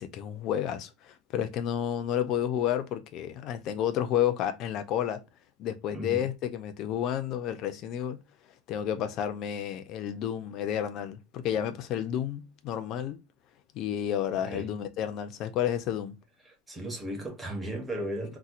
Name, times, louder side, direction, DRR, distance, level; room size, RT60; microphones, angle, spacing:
voice 1, 0.0-5.2 5.6-8.2 8.7-13.2 13.7-16.2, left 10 dB, 40° left, 0.4 m, -31 dB
voice 2, 5.9-6.3 14.5-14.7 16.4-18.4, right 1 dB, 10° right, 0.8 m, -36 dB
4.1 x 2.1 x 2.5 m
cardioid pair, 175°, 0 cm